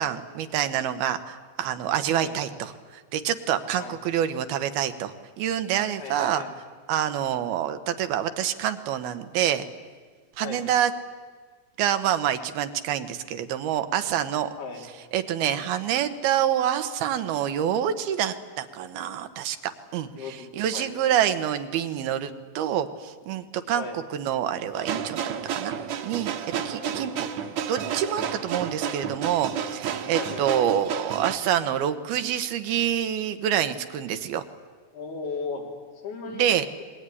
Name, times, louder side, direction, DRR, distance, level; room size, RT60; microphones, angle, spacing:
voice 1, 0.0-6.4 6.9-9.7 10.4-10.9 11.8-14.5 15.1-25.8 26.0-26.3 26.7-27.3 27.7-34.4 36.3-36.6, right 10 dB, 85° right, 9 dB, 3.1 m, -27 dB
voice 2, 6.0-6.6 10.4-10.6 14.6-15.0 15.4-15.6 20.2-20.9 23.7-24.0 26.8-27.0 30.1-30.7 34.9-35.7 36.0-36.5, left 4 dB, 90° left, 0 dB, 5.7 m, -36 dB
sound 1, 24.7-31.4, right 8 dB, 60° right, 2.1 m, -31 dB
26.0 x 21.0 x 9.9 m, 1.5 s
omnidirectional pair, 4.4 m